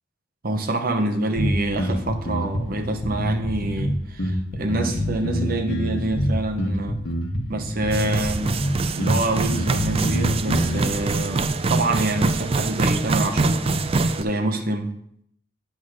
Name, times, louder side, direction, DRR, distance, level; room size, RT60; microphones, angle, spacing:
voice 1, 0.4-7.0 7.5-8.6 8.9-13.7 14.2-15.0, right 2 dB, 50° right, 5 dB, 0.9 m, -26 dB
sound 1, 1.4-11.0, equal, 75° left, 1.3 m, -26 dB
sound 2, 7.9-14.2, right 3 dB, 30° right, 0.4 m, -24 dB
9.2 x 3.7 x 6.4 m, 0.72 s
head